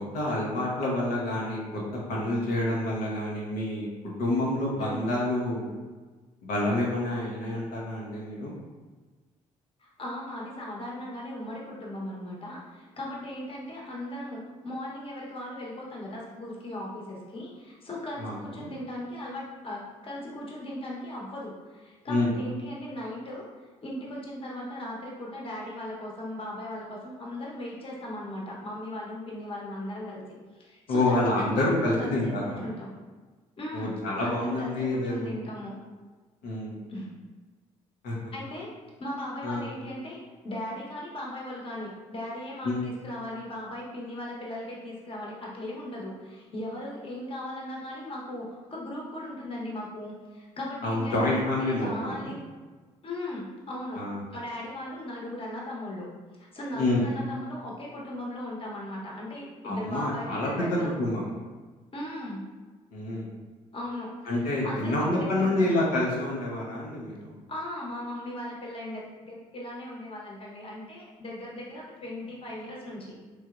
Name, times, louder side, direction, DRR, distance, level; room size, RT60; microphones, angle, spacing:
voice 1, 0.0-1.8 2.1-3.9 4.2-5.7 6.4-8.5 18.2-18.7 22.1-22.3 30.9-32.7 33.7-35.3 36.4-36.8 38.0-38.3 39.4-39.6 42.6-42.9 50.8-52.3 54.0-54.2 56.7-57.0 59.6-61.3 62.9-63.3 64.3-67.3, left 1 dB, 80° left, -5 dB, 0.8 m, -28 dB
voice 2, 4.8-5.1 9.8-23.4 23.8-30.2 30.6-32.9 33.6-33.9 34.2-35.8 36.9-37.1 38.3-38.7 39.0-40.2 40.4-52.4 53.0-54.1 54.3-56.1 56.4-60.9 61.9-62.5 63.7-65.7 67.5-73.2, left 1 dB, 35° left, -4 dB, 1.0 m, -38 dB
3.1 x 2.7 x 2.4 m, 1.4 s
supercardioid pair, 65°, 15 cm